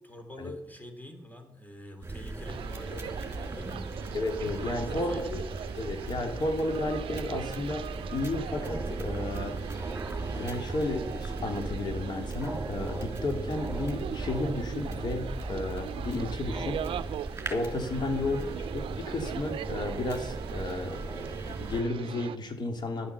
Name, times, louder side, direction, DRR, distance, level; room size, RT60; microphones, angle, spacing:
voice 1, 0.0-4.0 4.6-5.4 17.9-18.6, left 1 dB, 20° left, 6 dB, 3.3 m, -45 dB
sound 1, 2.0-21.8, right 2 dB, 25° right, 3.0 m, -37 dB
sound 2, 2.4-22.4, right 10 dB, 70° right, 0.5 m, -41 dB
voice 2, 4.1-5.4 5.8-9.8 10.4-16.8 17.5-18.4 18.7-23.1, left 2 dB, 50° left, 4 dB, 2.6 m, -33 dB
11.5 x 8.6 x 6.9 m, 0.88 s
supercardioid pair, 55°, 9 cm